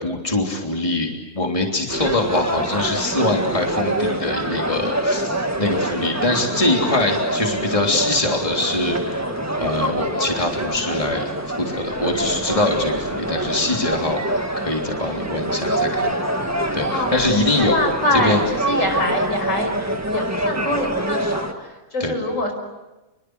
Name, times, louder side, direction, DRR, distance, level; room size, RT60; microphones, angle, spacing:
voice 1, 0.0-5.3 5.6-9.3 9.6-11.2 11.6-14.2 14.6-16.1 16.7-17.7 18.1-18.4 22.0-22.1, left 2 dB, 25° left, 1 dB, 3.4 m, -23 dB
sound 1, 1.9-21.5, right 1 dB, 10° right, 1.9 m, -25 dB
voice 2, 16.9-18.4 18.6-19.7 20.1-22.5, left 1 dB, 80° left, 4 dB, 5.9 m, -24 dB
29.5 x 23.0 x 8.1 m, 1.1 s
omnidirectional pair, 1.3 m